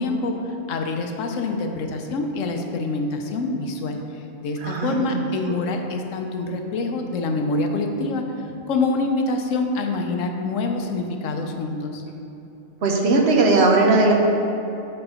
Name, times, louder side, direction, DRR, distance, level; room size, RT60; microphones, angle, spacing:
voice 1, 0.0-8.3 8.7-12.0, left 3 dB, 90° left, 4 dB, 1.1 m, -26 dB
voice 2, 4.6-5.0 12.8-14.1, right 3 dB, 60° right, 0 dB, 1.0 m, -18 dB
7.7 x 3.9 x 5.6 m, 3.0 s
omnidirectional pair, 1.3 m